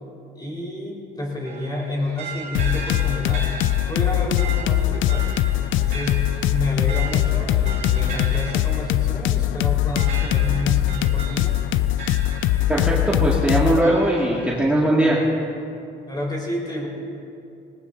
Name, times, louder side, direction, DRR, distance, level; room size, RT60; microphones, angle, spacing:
voice 1, 0.3-3.5 3.9-5.4 5.8-6.2 6.5-11.6 16.1-16.9, left 1 dB, 20° left, -2 dB, 4.5 m, -29 dB
sound 1, 1.4-13.1 13.6-14.6, right 4 dB, 50° right, 3.5 m, -37 dB
sound 2, 2.5-13.8, left 13 dB, 80° left, 0.4 m, -21 dB
voice 2, 12.7-15.2, right 1 dB, 5° right, -6 dB, 2.2 m, -20 dB
19.5 x 19.5 x 2.7 m, 2.6 s
cardioid pair, 90°, 20 cm